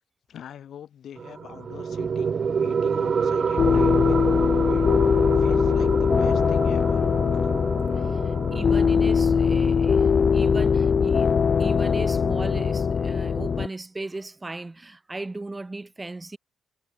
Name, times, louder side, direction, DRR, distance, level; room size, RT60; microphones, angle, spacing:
voice 1, 0.3-5.0 5.3-7.1 7.4-7.5, left 9 dB, 65° left, 5.1 m, -43 dB
sound 1, 1.2-12.2, right 6 dB, 40° right, 2.3 m, -29 dB
sound 2, 3.6-13.7, left 6 dB, 40° left, 0.6 m, -21 dB
voice 2, 7.9-16.4, right 2 dB, 15° right, 7.4 m, -37 dB
cardioid pair, 115°, 0 cm